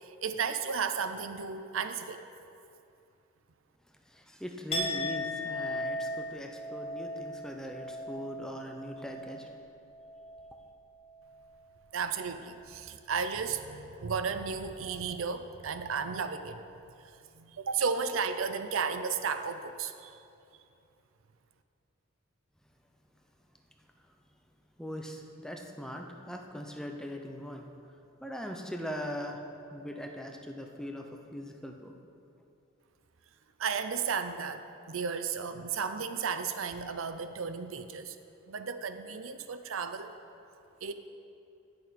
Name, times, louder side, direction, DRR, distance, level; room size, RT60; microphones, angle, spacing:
voice 1, 0.0-2.2 11.9-16.6 17.4-20.1 33.6-38.2 38.5-40.1 40.8-40.9, right 5 dB, 70° right, 10 dB, 0.5 m, -34 dB
voice 2, 3.9-9.5 24.8-27.9 28.2-29.4 29.7-31.9, equal, 5° left, 2 dB, 0.8 m, -41 dB
Chink clink, 4.7-10.6 10.9-11.3, left 1 dB, 30° left, 2.1 m, -37 dB
17.0 x 6.7 x 4.2 m, 2.6 s
head